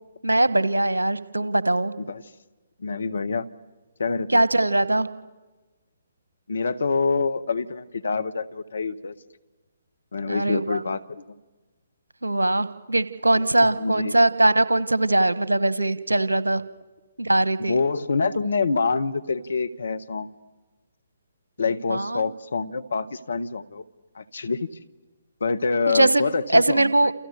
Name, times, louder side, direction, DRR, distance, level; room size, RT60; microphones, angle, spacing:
voice 1, 0.2-1.9 4.3-5.1 10.3-10.8 12.2-16.6 17.2-17.7 21.9-22.2 25.9-27.1, right 2 dB, 80° right, 15 dB, 1.3 m, -21 dB
voice 2, 2.8-3.5 4.0-4.4 6.5-9.1 10.1-11.2 13.4-14.1 17.6-20.3 21.6-23.8 24.1-24.7 25.4-27.1, left 4 dB, 65° left, 12 dB, 1.3 m, -26 dB
29.0 x 28.5 x 6.8 m, 1.2 s
figure-of-eight pair, 135°, 0 cm